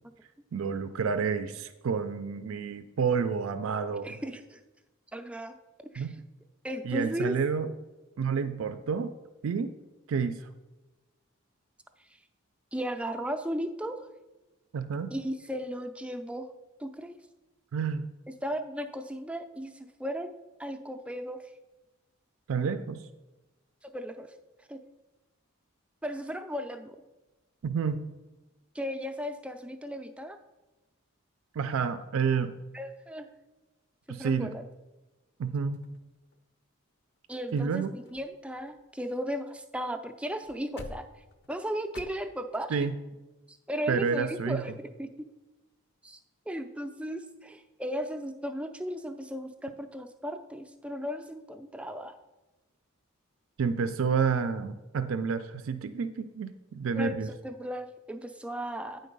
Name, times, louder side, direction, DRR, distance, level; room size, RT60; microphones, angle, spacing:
voice 1, 0.5-4.2 6.0-6.1 6.8-7.7 8.2-9.1 9.4-9.8 10.1-10.5 14.7-15.1 17.7-18.1 22.5-23.0 27.6-28.0 31.5-32.6 34.1-34.5 35.4-35.8 37.5-37.9 42.7-43.0 43.9-44.6 53.6-57.3, right 5 dB, 80° right, 11 dB, 0.4 m, -29 dB
voice 2, 4.0-4.6 5.1-5.6 5.9-6.1 6.6-7.4 12.7-14.1 15.1-16.4 16.8-17.2 18.4-20.3 20.6-21.4 23.8-24.3 24.7-24.8 26.0-27.0 28.7-30.4 32.7-33.3 34.1-34.6 37.3-41.1 41.5-42.9 43.5-45.1 46.0-46.2 46.5-52.2 57.0-59.0, equal, 5° right, 7 dB, 0.4 m, -36 dB
sound 1, 35.7-36.6 37.2-37.3 37.5-37.7 38.1-39.6 39.9-40.0 40.4-42.0, left 2 dB, 50° left, 0.5 m, -49 dB
9.3 x 3.8 x 5.3 m, 1.1 s
head